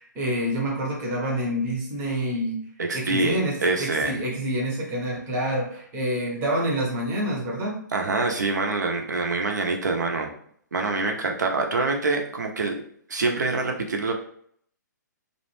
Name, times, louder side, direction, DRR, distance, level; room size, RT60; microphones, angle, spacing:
voice 1, 0.0-2.6 2.9-7.8, right 1 dB, 20° right, -2 dB, 0.7 m, -27 dB
voice 2, 2.8-4.2 7.9-10.3 10.7-12.7 13.1-14.1, right 3 dB, 65° right, 3 dB, 0.6 m, -25 dB
2.4 x 2.1 x 3.0 m, 0.63 s
figure-of-eight pair, 130°, 10 cm